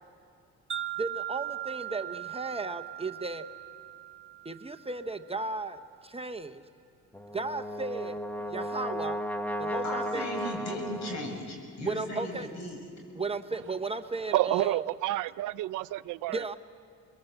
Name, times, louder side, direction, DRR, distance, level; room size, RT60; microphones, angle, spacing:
Wind chime, 0.7-5.0, right 12 dB, 40° right, 1.2 m, -39 dB
voice 1, 1.0-3.5 4.4-6.6 7.3-8.2 8.5-9.2 9.6-10.3 11.9-12.5 13.2-14.9 16.3-16.6, right 3 dB, 20° right, 0.8 m, -35 dB
Brass instrument, 7.1-11.4, equal, 5° left, 1.2 m, -35 dB
voice 2, 9.8-12.8, left 1 dB, 65° left, 7.3 m, -37 dB
voice 3, 14.3-16.6, right 16 dB, 80° right, 0.5 m, -29 dB
26.0 x 21.5 x 7.9 m
cardioid pair, 90°, 30 cm